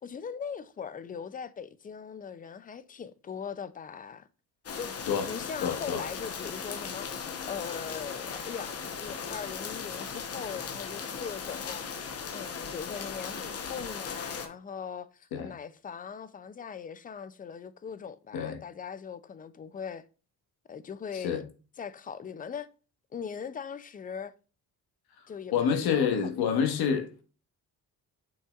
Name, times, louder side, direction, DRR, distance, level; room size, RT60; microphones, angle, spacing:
voice 1, 0.0-4.3 4.7-4.9 5.3-20.0 20.7-21.4 21.8-22.7 23.1-24.3 25.3-26.8, left 6 dB, 25° left, 0.4 m, -40 dB
sound 1, 4.6-14.5, left 6 dB, 40° left, 1.0 m, -38 dB
voice 2, 5.6-6.0 15.3-15.5 18.3-18.6 21.1-21.4 25.5-27.1, left 7 dB, 85° left, 1.6 m, -27 dB
7.2 x 5.8 x 2.4 m
cardioid pair, 150°, 37 cm